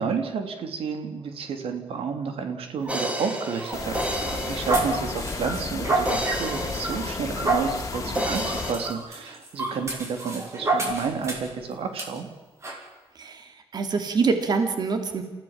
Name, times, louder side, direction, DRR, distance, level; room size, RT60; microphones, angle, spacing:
voice 1, 0.0-4.0 4.3-12.3, right 6 dB, 85° right, 6 dB, 3.2 m, -31 dB
sound 1, 2.8-11.6 12.0-12.1 12.6-12.8, right 2 dB, 30° right, 5.8 m, -30 dB
sound 2, 2.9-5.5 6.1-7.8 8.2-8.9, equal, 15° right, 2.9 m, -32 dB
sound 3, 3.7-8.7, left 4 dB, 35° left, 2.5 m, -33 dB
voice 2, 13.2-15.2, right 4 dB, 50° right, 6 dB, 2.9 m, -25 dB
29.0 x 16.5 x 7.4 m, 1.3 s
wide cardioid pair, 145°, 9 cm